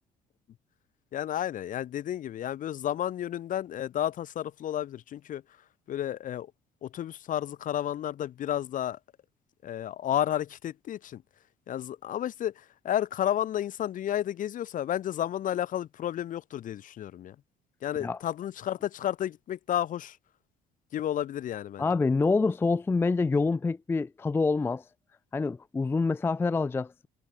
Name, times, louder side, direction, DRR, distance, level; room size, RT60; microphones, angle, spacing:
voice 1, 1.1-5.4 5.9-6.5 6.8-9.0 9.6-11.2 11.7-17.4 17.8-20.2 20.9-21.9, left 11 dB, 50° left, 0.8 m, -32 dB
voice 2, 21.8-24.8 25.3-27.1, left 4 dB, 15° left, 0.3 m, -26 dB
cardioid pair, 110°, 17 cm